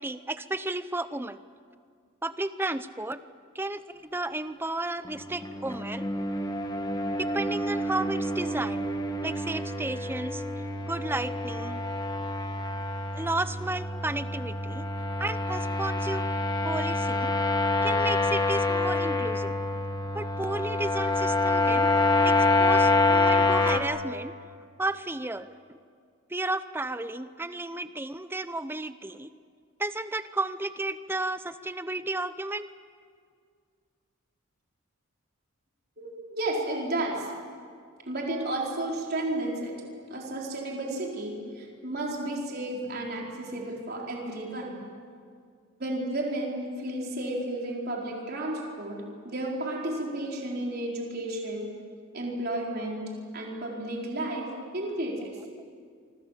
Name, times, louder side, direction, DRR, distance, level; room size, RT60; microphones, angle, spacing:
voice 1, 0.0-1.4 2.2-3.2 3.5-6.1 7.2-8.9 9.2-10.4 10.9-11.8 13.1-14.9 15.2-16.3 16.6-17.3 17.8-19.6 20.1-21.9 22.2-24.3 24.8-25.8 26.3-29.3 29.8-32.7, right 2 dB, 10° right, 13 dB, 0.7 m, -33 dB
sound 1, 5.0-23.8, left 2 dB, 20° left, 1.5 m, -27 dB
voice 2, 36.0-37.3 38.1-39.7 40.1-44.7 45.8-51.7 52.1-54.5 54.7-55.3, right 1 dB, 45° right, -2 dB, 4.3 m, -32 dB
26.5 x 25.0 x 7.4 m, 2.1 s
head